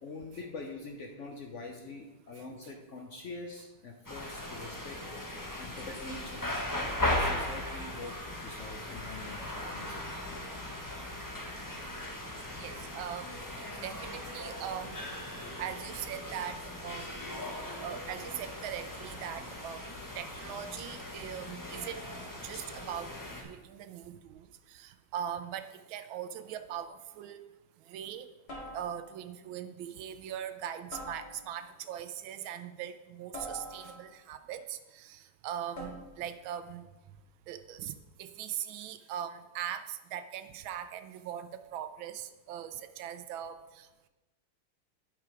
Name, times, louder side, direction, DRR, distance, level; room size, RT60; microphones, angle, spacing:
voice 1, 0.0-5.0 5.6-6.5 7.0-10.4, left 3 dB, 75° left, 2 dB, 0.6 m, -44 dB
sound 1, 4.0-23.4, left 1 dB, 15° left, 0.6 m, -38 dB
voice 2, 12.6-15.0 15.6-17.2 17.8-19.9 20.1-22.1 22.4-27.4 27.9-28.3 28.7-36.9 37.5-37.9 38.2-44.1, right 9 dB, 75° right, 11 dB, 1.3 m, -41 dB
sound 2, 26.7-27.0 28.5-29.3 30.9-31.7 33.3-34.3 35.7-36.3, equal, 50° left, 2.2 m, -45 dB
9.0 x 6.0 x 4.8 m, 1.1 s
omnidirectional pair, 2.3 m